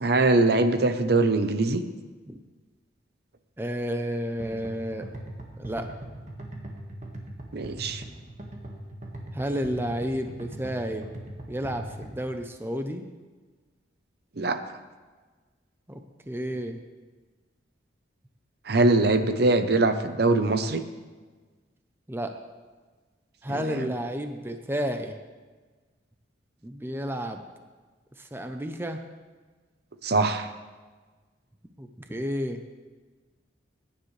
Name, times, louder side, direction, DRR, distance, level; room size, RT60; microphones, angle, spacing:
voice 1, 0.0-1.8 7.5-8.0 14.4-14.6 18.7-20.8 23.5-23.9 30.0-30.5, right 2 dB, 55° right, 9 dB, 0.7 m, -22 dB
voice 2, 3.6-5.1 5.6-5.9 9.3-11.1 11.5-13.1 15.9-16.8 22.1-22.3 23.4-25.2 26.6-27.4 28.2-29.0 31.8-32.6, equal, 10° right, 6 dB, 0.6 m, -31 dB
sound 1, 4.4-12.4, right 1 dB, 40° right, 1.6 m, -40 dB
21.0 x 10.0 x 3.3 m, 1.4 s
head